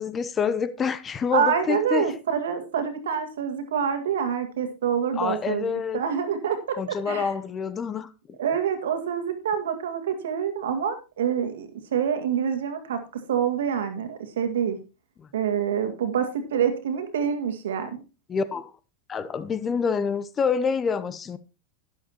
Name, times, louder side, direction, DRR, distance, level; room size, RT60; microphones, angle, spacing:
voice 1, 0.0-2.1 5.2-6.0 6.8-8.4 15.2-15.3 18.3-18.7 19.1-21.4, left 6 dB, 20° left, 0.7 m, -27 dB
voice 2, 1.3-7.3 8.4-14.8 15.3-18.0, right 8 dB, 60° right, 2.0 m, -26 dB
12.0 x 11.0 x 2.9 m
figure-of-eight pair, 90°, 0 cm